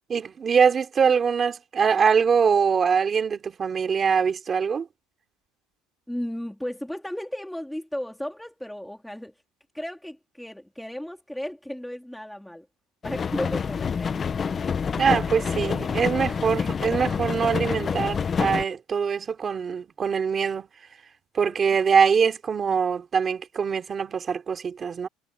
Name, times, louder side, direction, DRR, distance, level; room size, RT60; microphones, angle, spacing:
voice 1, 0.1-4.9 15.0-20.7 21.3-25.1, right 6 dB, 20° right, 3.0 m, -23 dB
voice 2, 6.1-9.3 9.7-12.7 13.0-14.3 21.4-21.6, equal, ahead, 2.1 m, -34 dB
sound 1, 13.0-18.6, left 6 dB, 20° left, 0.5 m, -27 dB
cardioid pair, 170°, 0 cm